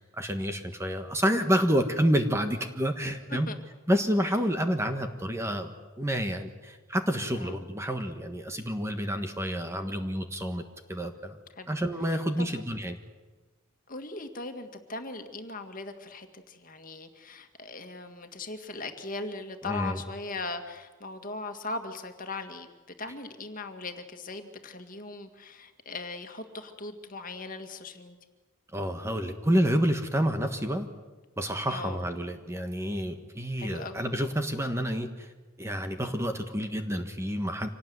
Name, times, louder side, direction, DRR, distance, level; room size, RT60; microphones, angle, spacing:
voice 1, 0.0-3.5 3.9-10.6 10.9-11.4 11.7-13.0 19.6-20.0 28.7-30.9 31.4-35.3 35.6-37.7, equal, 15° right, 6 dB, 1.5 m, -29 dB
voice 2, 12.1-12.6 13.9-22.7 23.0-28.2 31.7-32.0 33.6-34.0, left 3 dB, 40° left, 6 dB, 2.1 m, -39 dB
26.0 x 18.5 x 9.5 m, 1.3 s
head